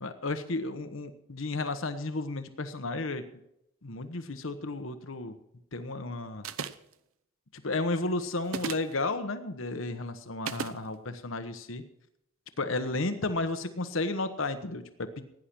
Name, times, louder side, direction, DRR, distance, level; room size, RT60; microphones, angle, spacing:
voice 1, 0.0-3.3 3.8-5.3 5.7-6.5 7.5-11.8 12.6-15.2, left 2 dB, 70° left, 9 dB, 1.1 m, -33 dB
sound 1, 6.4-6.9 8.5-8.9 10.5-10.8, right 6 dB, 85° right, 0.8 m, -35 dB
17.0 x 10.0 x 6.0 m, 0.80 s
head